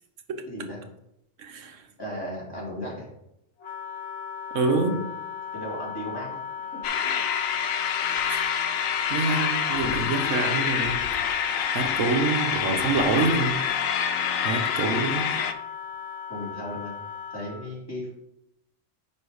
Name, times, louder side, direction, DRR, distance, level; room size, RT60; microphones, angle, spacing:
voice 1, 0.5-0.8 2.0-3.1 5.5-6.4 9.7-10.2 16.3-17.0 17.3-18.1, equal, 15° left, -5 dB, 2.6 m, -36 dB
voice 2, 1.4-1.8 4.5-5.0 8.3-11.1 11.7-13.6 14.4-15.3, right 3 dB, 70° right, 7 dB, 1.2 m, -27 dB
Wind instrument woodwind instrument, 3.6-17.7, left 7 dB, 65° left, 1.2 m, -37 dB
sound 1, 6.8-15.5, left 8 dB, 85° left, 1.0 m, -27 dB
9.5 x 3.4 x 4.8 m, 0.82 s
omnidirectional pair, 1.3 m